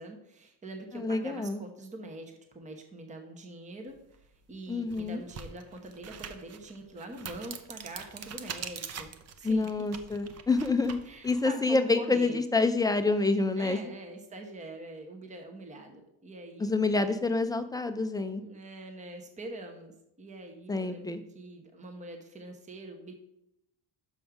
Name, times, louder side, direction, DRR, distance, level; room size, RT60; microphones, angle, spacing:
voice 1, 0.0-9.1 9.4-9.7 11.0-12.4 13.6-16.7 18.4-23.1, right 2 dB, 15° right, 4 dB, 0.9 m, -44 dB
voice 2, 0.9-1.6 4.7-5.2 9.4-11.0 11.2-13.8 16.6-18.4 20.7-21.2, left 3 dB, 10° left, 8 dB, 0.3 m, -27 dB
sound 1, 4.1-4.2 4.8-11.4, right 7 dB, 35° right, 0.6 m, -43 dB
6.3 x 5.3 x 5.9 m, 0.81 s
cardioid pair, 150°, 42 cm